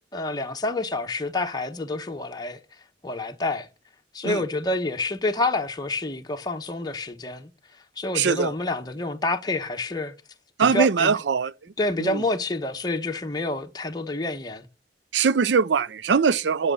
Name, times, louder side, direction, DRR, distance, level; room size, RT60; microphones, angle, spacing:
voice 1, 0.1-2.6 3.0-3.7 4.1-7.5 8.0-10.1 10.6-11.2 11.8-14.7, left 2 dB, 25° left, 1.1 m, -28 dB
voice 2, 8.1-8.5 10.6-11.5 12.0-12.2 15.1-16.7, right 6 dB, 80° right, 0.5 m, -21 dB
11.5 x 6.4 x 6.7 m
head